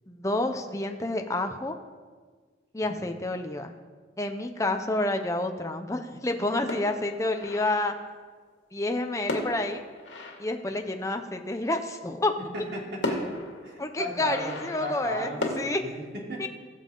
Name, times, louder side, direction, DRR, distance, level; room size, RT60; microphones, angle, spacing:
voice 1, 0.1-1.8 2.7-3.7 4.2-7.9 8.7-9.8 10.4-12.3 13.8-15.3 15.6-15.8 16.4-16.5, left 2 dB, 15° left, 5 dB, 0.7 m, -29 dB
sound 1, 6.7-8.1 9.3-11.2 12.4-12.5 13.0-15.7, left 1 dB, 85° left, 2.1 m, -36 dB
voice 2, 12.5-13.2 13.6-16.5, right 1 dB, 65° right, -2 dB, 3.0 m, -36 dB
21.0 x 7.2 x 3.9 m, 1.5 s
head